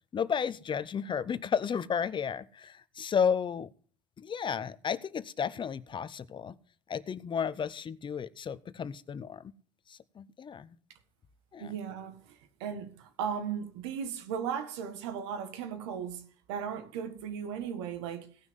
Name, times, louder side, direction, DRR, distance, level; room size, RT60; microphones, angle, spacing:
voice 1, 0.1-3.7 4.2-6.6 6.9-9.5 9.9-10.8 11.5-11.8, left 7 dB, 35° left, 0.8 m, -33 dB
voice 2, 11.6-16.2 16.5-18.3, right 7 dB, 80° right, 1.8 m, -36 dB
17.0 x 6.2 x 5.3 m
hypercardioid pair, 80°, 14 cm